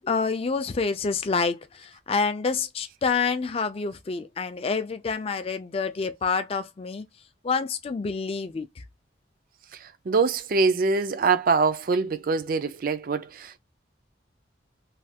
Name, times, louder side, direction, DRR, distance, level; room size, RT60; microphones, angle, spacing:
voice 1, 0.0-7.1 7.4-8.7, left 5 dB, 30° left, 0.3 m, -27 dB
voice 2, 10.1-13.6, right 4 dB, 50° right, 0.4 m, -24 dB
3.2 x 2.3 x 2.7 m
head